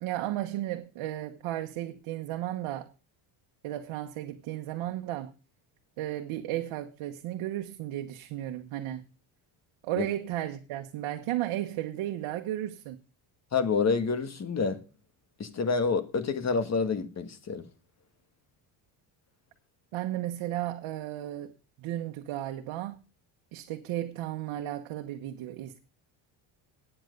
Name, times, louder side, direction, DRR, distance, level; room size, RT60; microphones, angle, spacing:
voice 1, 0.0-2.9 3.6-5.3 6.0-9.0 9.8-13.0 19.9-23.0 23.5-25.8, right 13 dB, 70° right, 1.2 m, -34 dB
voice 2, 13.5-14.8 15.4-17.6, left 5 dB, 30° left, 1.6 m, -28 dB
10.0 x 9.2 x 5.3 m
cardioid pair, 105°, 50 cm